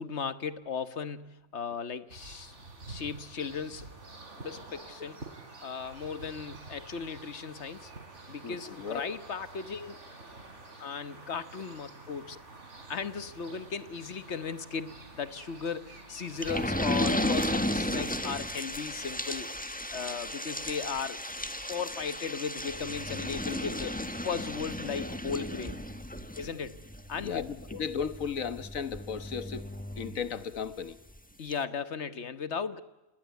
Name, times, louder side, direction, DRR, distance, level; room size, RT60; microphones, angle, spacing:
voice 1, 0.0-2.5 2.9-3.9 4.4-5.2 5.6-7.9 8.3-10.0 10.8-12.4 12.9-19.5 19.9-21.2 21.7-25.8 26.4-26.8 27.1-27.4 27.7-27.8 31.4-32.8, left 6 dB, 60° left, 1.5 m, -36 dB
sound 1, 2.1-17.6, right 3 dB, 60° right, 4.1 m, -48 dB
voice 2, 8.4-9.1 27.2-29.6 30.0-31.0, left 6 dB, 90° left, 1.7 m, -35 dB
sound 2, 16.4-30.7 31.1-31.2 31.5-31.6, left 1 dB, 5° left, 1.5 m, -34 dB
28.5 x 20.0 x 9.3 m
omnidirectional pair, 1.4 m